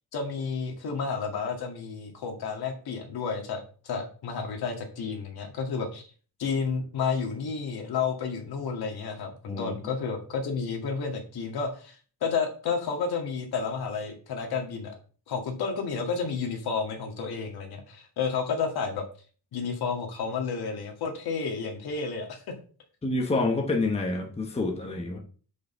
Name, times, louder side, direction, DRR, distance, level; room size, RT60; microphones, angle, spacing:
voice 1, 0.1-6.0 6.4-15.0 15.3-19.0 19.5-22.6, left 5 dB, 65° left, 3 dB, 2.1 m, -31 dB
voice 2, 23.0-25.2, left 2 dB, 15° left, 1 dB, 1.1 m, -28 dB
6.5 x 5.4 x 6.7 m, 0.41 s
wide cardioid pair, 180°, 40 cm